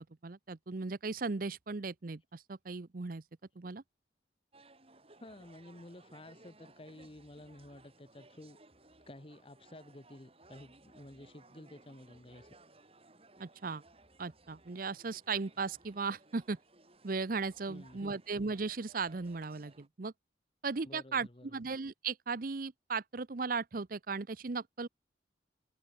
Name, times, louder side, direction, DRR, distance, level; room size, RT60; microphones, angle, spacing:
voice 1, 0.2-3.2 3.6-3.8 13.4-13.8 14.2-16.6 17.0-20.1 20.6-24.9, right 4 dB, 50° right, 0.7 m, -37 dB
sound 1, 4.5-19.9, right 2 dB, 30° right, 5.4 m, -61 dB
voice 2, 5.2-8.6 9.1-12.5 17.7-18.2 20.8-21.6, left 1 dB, 30° left, 1.3 m, -52 dB
open air
head